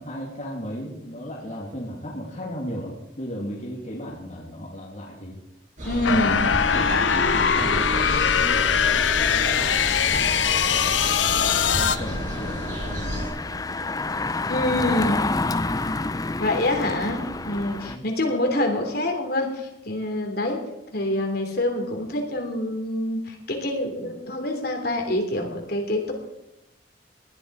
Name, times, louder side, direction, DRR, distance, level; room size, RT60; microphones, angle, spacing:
voice 1, 0.0-5.4 6.1-10.5 11.3-14.0 14.6-15.2 17.8-18.1, equal, 40° left, -3 dB, 2.5 m, -36 dB
voice 2, 5.8-6.4 14.5-15.2 16.4-20.6 20.9-26.1, left 1 dB, 55° left, 2 dB, 3.1 m, -26 dB
sound 1, 5.8-13.3, equal, 45° right, 6.3 m, -31 dB
sound 2, 6.0-12.0, left 7 dB, 85° left, 0.7 m, -21 dB
Engine, 10.1-18.0, left 3 dB, 20° left, 0.5 m, -30 dB
19.5 x 12.0 x 4.8 m, 0.92 s
head